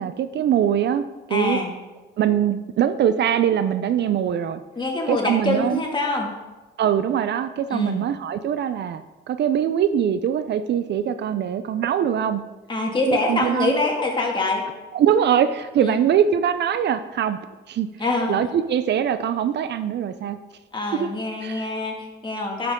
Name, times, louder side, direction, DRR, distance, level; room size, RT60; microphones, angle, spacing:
voice 1, 0.0-1.6 2.2-4.6 5.1-5.8 6.8-12.4 13.1-13.7 14.9-17.4 17.7-17.9 18.3-20.4 20.9-21.1 21.4-21.7, right 9 dB, 60° right, 11 dB, 0.5 m, -22 dB
voice 2, 1.3-1.7 4.8-6.3 7.7-8.0 12.7-14.6 15.8-16.0 18.0-18.4 20.7-22.7, left 2 dB, 25° left, -1 dB, 2.1 m, -24 dB
9.8 x 6.0 x 3.7 m, 1.2 s
cardioid pair, 90°, 20 cm